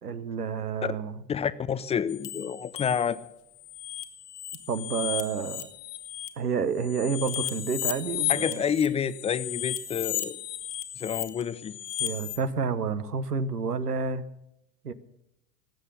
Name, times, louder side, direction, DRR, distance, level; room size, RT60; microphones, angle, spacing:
voice 1, 0.0-1.2 4.7-5.7 6.4-8.6 12.0-14.2 14.8-14.9, right 5 dB, 85° right, 13 dB, 1.0 m, -29 dB
voice 2, 1.3-3.2 8.3-10.4 11.0-11.7, left 7 dB, 15° left, 16 dB, 0.5 m, -29 dB
sound 1, 2.1-3.2 3.6-6.3 6.8-12.4, left 13 dB, 40° left, 1.3 m, -34 dB
19.0 x 7.9 x 6.8 m, 0.84 s
figure-of-eight pair, 80°, 45 cm